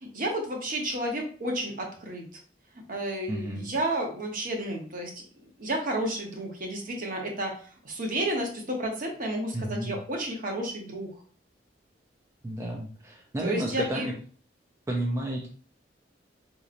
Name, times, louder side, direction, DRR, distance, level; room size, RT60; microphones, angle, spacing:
voice 1, 0.0-2.3 2.7-7.6 7.8-11.1 13.4-14.1, right 1 dB, 50° right, 1 dB, 0.9 m, -31 dB
voice 2, 3.3-3.7 9.5-10.0 12.4-14.1 14.9-15.5, right 1 dB, 15° right, -1 dB, 0.4 m, -31 dB
3.9 x 2.9 x 2.5 m, 0.41 s
head